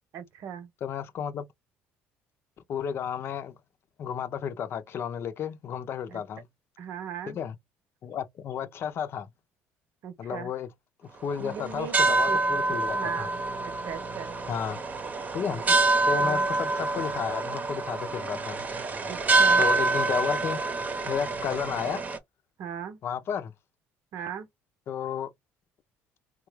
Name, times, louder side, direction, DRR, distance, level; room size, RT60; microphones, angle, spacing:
voice 1, 0.1-0.7 6.1-6.2 6.8-7.4 10.0-10.5 11.4-12.4 12.7-13.4 13.6-14.3 15.5-15.8 16.2-16.5 19.1-19.6 22.6-23.0 24.1-24.5, right 8 dB, 65° right, 0.9 m, -38 dB
voice 2, 0.8-1.4 2.7-3.5 4.0-6.5 7.3-7.6 8.0-9.3 10.2-10.7 11.2-13.3 14.5-14.8 15.3-15.6 16.1-18.7 19.6-20.6 21.1-22.0 23.0-23.5 24.9-25.3, left 8 dB, 50° left, 0.7 m, -32 dB
sound 1, 11.3-22.2, right 3 dB, 30° right, 0.8 m, -26 dB
3.7 x 2.4 x 3.1 m
cardioid pair, 100°, 5 cm